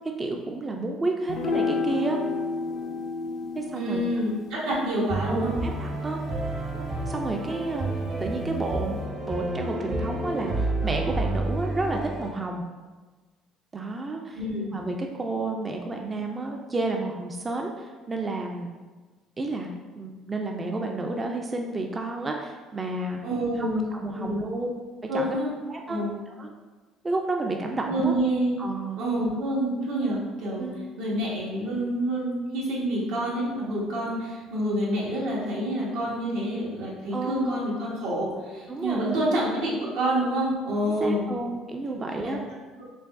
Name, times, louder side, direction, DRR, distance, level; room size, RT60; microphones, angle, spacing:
voice 1, 0.2-2.2 3.5-4.0 5.3-6.2 6.7-7.9 8.2-12.6 13.7-14.4 14.7-18.7 19.4-19.7 20.0-23.2 23.6-24.7 25.1-25.4 25.7-26.0 26.4-26.5 27.0-28.1 28.6-29.0 30.6-30.8 37.1-37.6 38.7-39.3 41.0-42.4, right 2 dB, 20° right, 2 dB, 0.3 m, -31 dB
sound 1, 1.3-7.8, left 4 dB, 60° left, 0.4 m, -33 dB
voice 2, 3.7-5.5 14.3-14.7 23.2-23.8 24.2-24.5 25.1-25.5 25.9-26.1 27.9-28.5 29.0-30.7 31.0-41.3 42.2-42.4 42.8-42.9, right 1 dB, 90° right, -5 dB, 1.3 m, -27 dB
sound 2, 5.1-12.3, right 2 dB, 45° right, 0.7 m, -30 dB
4.6 x 2.9 x 2.5 m, 1.3 s
cardioid pair, 120°, 0 cm